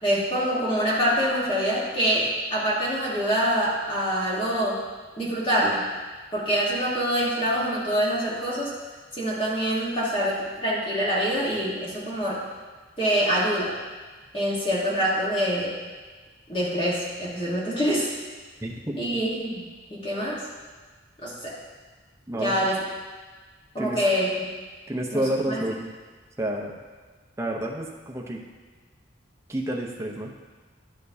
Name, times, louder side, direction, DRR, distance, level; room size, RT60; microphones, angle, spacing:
voice 1, 0.0-4.8 5.2-5.8 6.3-8.7 9.2-12.4 13.0-13.8 14.3-15.8 16.5-18.1 19.0-20.5 21.2-21.6 22.3-22.8 23.7-24.3 25.1-25.6, equal, 30° left, -6 dB, 1.4 m, -25 dB
voice 2, 18.6-19.0 22.3-22.6 23.8-24.0 24.9-25.9 26.4-26.7 27.4-28.4 29.5-30.3, right 1 dB, 15° right, -1 dB, 0.8 m, -29 dB
12.0 x 6.7 x 2.8 m, 1.4 s
head